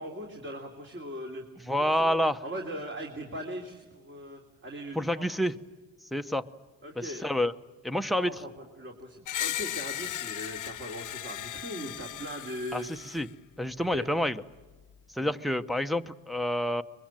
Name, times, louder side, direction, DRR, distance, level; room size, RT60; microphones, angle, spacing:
voice 1, 0.0-1.4 1.7-5.2 6.8-7.3 8.2-12.9 13.9-14.1 15.2-15.3, equal, 35° right, 1 dB, 3.2 m, -40 dB
voice 2, 1.7-2.4 4.9-5.6 6.1-6.4 7.0-7.5 7.8-8.4 12.7-13.3 13.6-14.4 15.1-16.8, equal, ahead, 7 dB, 0.8 m, -28 dB
Screech, 9.3-13.3, left 12 dB, 60° left, 0.8 m, -36 dB
24.0 x 22.0 x 9.1 m, 1.3 s
cardioid pair, 110°, 35 cm